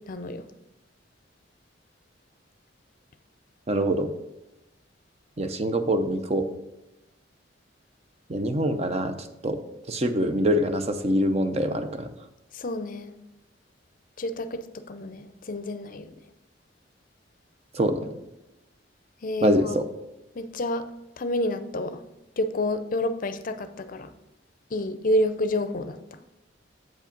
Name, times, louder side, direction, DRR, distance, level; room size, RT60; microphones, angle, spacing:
voice 1, 0.1-0.4 12.6-13.1 14.2-14.6 14.9-16.0 19.2-19.8 20.4-20.8 21.2-22.0 22.4-24.1 24.7-26.0, left 1 dB, 45° left, 11 dB, 0.6 m, -28 dB
voice 2, 3.7-4.1 5.4-6.5 8.3-9.1 9.4-9.6 9.9-12.1 17.8-18.0 19.4-19.8, equal, 35° right, 8 dB, 0.6 m, -24 dB
7.9 x 5.1 x 5.2 m, 0.96 s
head